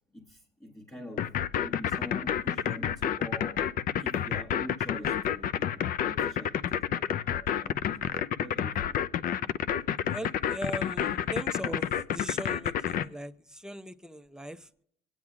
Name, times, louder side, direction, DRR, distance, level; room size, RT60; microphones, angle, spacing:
voice 1, 0.1-1.3 1.6-3.7 4.0-9.0, equal, 15° left, 1.2 m, -45 dB
sound 1, 1.2-13.0, left 9 dB, 55° left, 0.5 m, -29 dB
voice 2, 10.0-14.7, equal, 5° right, 0.6 m, -39 dB
24.0 x 9.6 x 2.4 m
cardioid pair, 110°, 17 cm